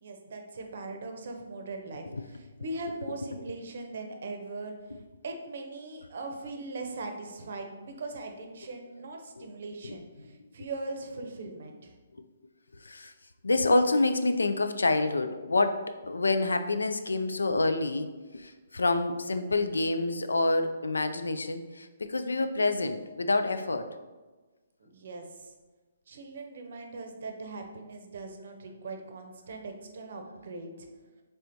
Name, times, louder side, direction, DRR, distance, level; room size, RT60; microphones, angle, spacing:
voice 1, 0.0-4.7 5.2-11.9 17.2-17.4 24.8-25.5 26.1-30.9, right 3 dB, 60° right, 4 dB, 0.6 m, -40 dB
voice 2, 12.7-13.1 13.4-23.9, left 2 dB, 80° left, 9 dB, 0.3 m, -27 dB
4.3 x 3.4 x 2.6 m, 1.3 s
figure-of-eight pair, 135°, 0 cm